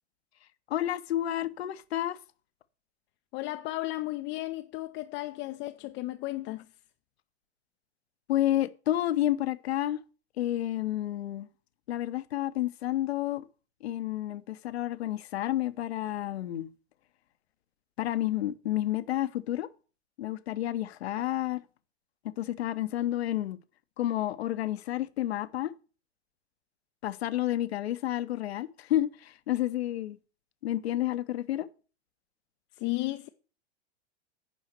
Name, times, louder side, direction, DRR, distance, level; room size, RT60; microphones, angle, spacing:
voice 1, 0.7-2.2 8.3-10.0 10.4-11.5 11.9-13.4 13.8-16.7 18.0-19.7 20.2-21.6 22.4-23.6 24.0-25.7 27.0-30.2 30.6-31.7, left 13 dB, 65° left, 0.9 m, -30 dB
voice 2, 3.3-6.7 32.7-33.3, left 19 dB, 30° left, 0.6 m, -34 dB
9.2 x 5.6 x 6.7 m
figure-of-eight pair, 100°, 35 cm